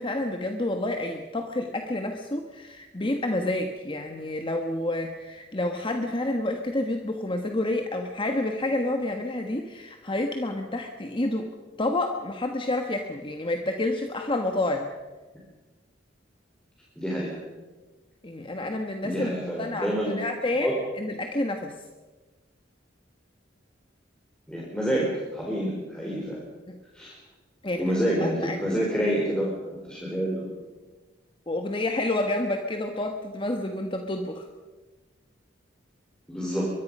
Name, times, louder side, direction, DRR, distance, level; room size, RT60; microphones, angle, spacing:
voice 1, 0.0-11.5 11.8-14.9 18.2-19.3 19.6-21.7 26.7-26.8 27.6-27.9 28.2-28.8 31.5-34.5, left 2 dB, 25° left, 4 dB, 1.4 m, -29 dB
voice 2, 17.0-17.4 19.0-20.1 20.6-20.7 24.5-26.4 26.9-27.1 27.8-29.6 29.9-30.5 36.3-36.7, equal, 5° left, -4 dB, 4.5 m, -27 dB
24.0 x 22.5 x 5.5 m, 1.3 s
head